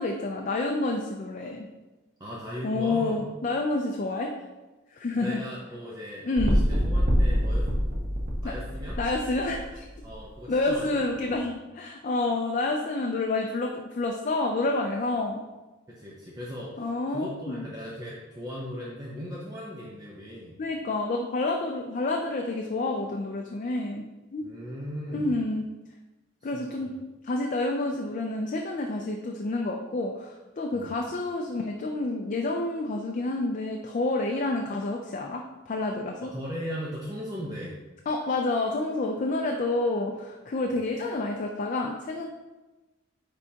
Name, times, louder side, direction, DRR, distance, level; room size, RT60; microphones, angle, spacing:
voice 1, 0.0-1.7 2.6-4.3 4.9-5.4 6.2-6.6 8.4-8.5 9.0-9.8 10.5-15.4 16.8-17.7 20.6-24.0 24.3-24.4 25.1-25.6 26.4-26.9 27.2-36.3 38.1-42.3, left 2 dB, 40° left, 1 dB, 0.4 m, -29 dB
voice 2, 2.2-3.2 5.1-7.7 8.4-9.0 10.0-11.5 15.9-20.5 24.4-25.3 26.4-26.9 30.7-30.9 36.2-37.8 40.7-40.8, equal, 20° right, -5 dB, 0.7 m, -38 dB
sound 1, 6.4-10.1 10.7-10.8, equal, 40° right, 1.0 m, -25 dB
9.5 x 3.5 x 2.8 m, 1.1 s
head